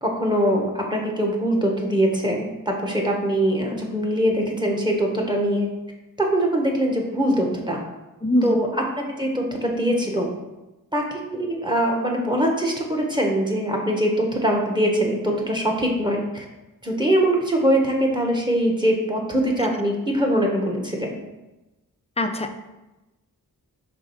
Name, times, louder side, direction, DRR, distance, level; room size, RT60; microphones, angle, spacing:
voice 1, 0.0-5.7 6.2-7.8 8.4-10.3 10.9-16.4 16.8-21.2, equal, 15° right, 0 dB, 1.2 m, -22 dB
voice 2, 8.2-8.6 22.2-22.6, equal, 20° left, 7 dB, 0.5 m, -22 dB
4.9 x 3.7 x 5.5 m, 1.0 s
wide cardioid pair, 90°, 35 cm